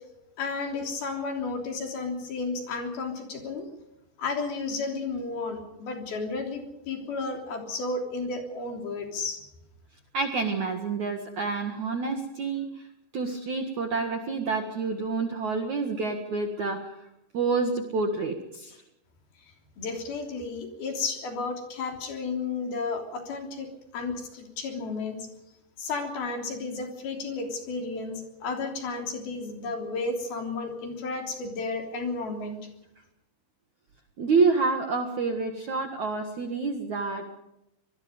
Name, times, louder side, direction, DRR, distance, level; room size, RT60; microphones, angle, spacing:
voice 1, 0.4-3.7 4.2-9.4 19.8-25.3 25.8-32.6, left 3 dB, 55° left, 4 dB, 4.9 m, -32 dB
voice 2, 10.1-12.7 13.1-17.0 17.3-18.8 34.2-37.2, right 4 dB, 55° right, 4 dB, 2.3 m, -28 dB
26.0 x 20.5 x 5.2 m, 0.87 s
omnidirectional pair, 5.5 m